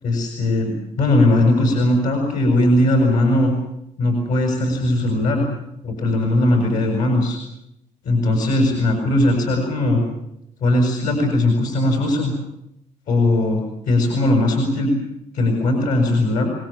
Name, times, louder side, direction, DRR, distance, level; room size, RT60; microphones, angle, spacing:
voice 1, 0.0-3.5 4.0-5.5 5.8-7.4 8.0-10.0 10.6-12.3 13.1-15.0 15.3-16.5, left 1 dB, 80° left, 3 dB, 7.4 m, -19 dB
28.0 x 20.0 x 7.5 m, 0.78 s
cardioid pair, 180°, 13 cm